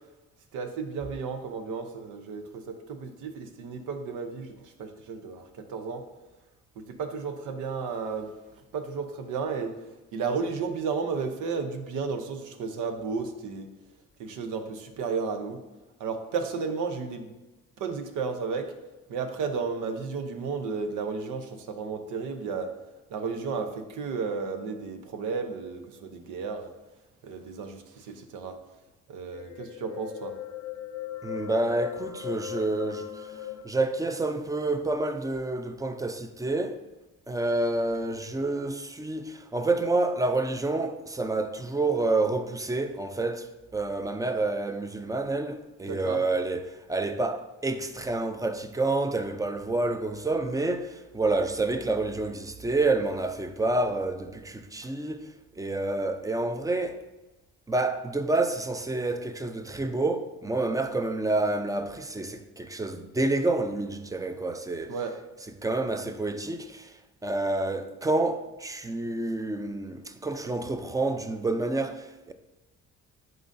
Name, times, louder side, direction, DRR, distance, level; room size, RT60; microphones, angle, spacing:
voice 1, 0.5-6.0 6.8-8.3 8.7-9.7 10.1-13.7 14.2-15.6 16.0-17.3 17.8-18.7 19.1-22.7 23.1-26.7 27.2-28.6 29.1-30.4 45.9-46.2 64.9-65.2, right 5 dB, 90° right, 0.8 m, -33 dB
sound 1, 29.3-33.6, left 11 dB, 85° left, 0.7 m, -38 dB
voice 2, 31.2-33.4 33.6-36.8 37.3-57.0 57.7-64.9 65.6-66.9 67.2-72.3, right 2 dB, 10° right, 0.5 m, -28 dB
10.5 x 3.9 x 2.6 m
cardioid pair, 90°, 30 cm